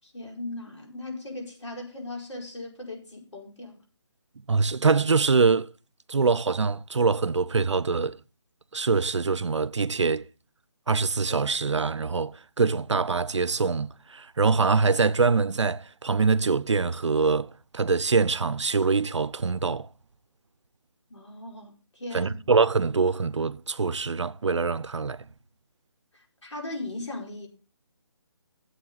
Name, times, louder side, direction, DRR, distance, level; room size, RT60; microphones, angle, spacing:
voice 1, 0.0-3.8 21.1-22.4 26.1-27.5, left 2 dB, 80° left, 5.2 m, -38 dB
voice 2, 4.5-5.7 6.1-8.2 8.7-10.3 10.9-19.9 22.1-25.2, right 4 dB, 85° right, 0.7 m, -24 dB
14.0 x 7.9 x 4.0 m
figure-of-eight pair, 165°, 15 cm